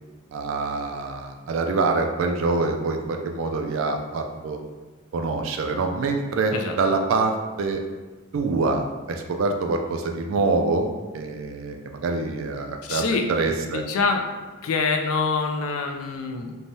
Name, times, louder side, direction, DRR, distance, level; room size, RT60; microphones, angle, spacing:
voice 1, 0.3-4.6 5.1-7.8 8.3-10.9 11.1-13.0 13.3-13.8, right 3 dB, 60° right, 4 dB, 0.3 m, -25 dB
voice 2, 12.8-14.3 14.6-16.6, left 4 dB, 70° left, 4 dB, 0.3 m, -25 dB
3.2 x 2.1 x 2.6 m, 1.2 s
head